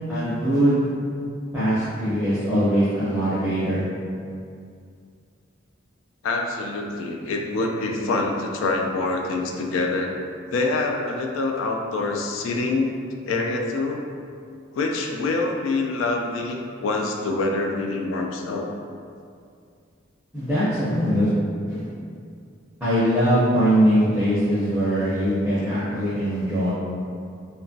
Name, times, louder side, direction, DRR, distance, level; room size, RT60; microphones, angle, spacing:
voice 1, 0.1-0.7 1.5-3.8 20.3-21.3 21.7-21.9 22.8-26.7, equal, 5° right, -13 dB, 0.5 m, -21 dB
voice 2, 6.2-10.1 10.5-12.9 13.3-14.0 14.7-18.7, left 3 dB, 90° left, 2 dB, 0.3 m, -25 dB
2.8 x 2.2 x 2.6 m, 2.3 s
head